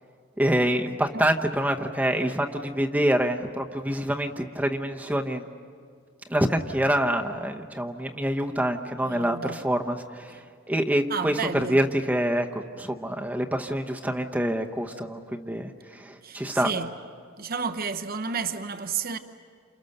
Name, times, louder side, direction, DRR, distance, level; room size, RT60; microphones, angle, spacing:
voice 1, 0.4-5.4 6.3-11.4 11.7-16.7, right 1 dB, 10° right, 0.9 m, -26 dB
voice 2, 9.0-9.6 11.1-11.8 16.2-16.9 17.4-19.2, right 5 dB, 50° right, 0.9 m, -31 dB
29.0 x 28.5 x 6.6 m
head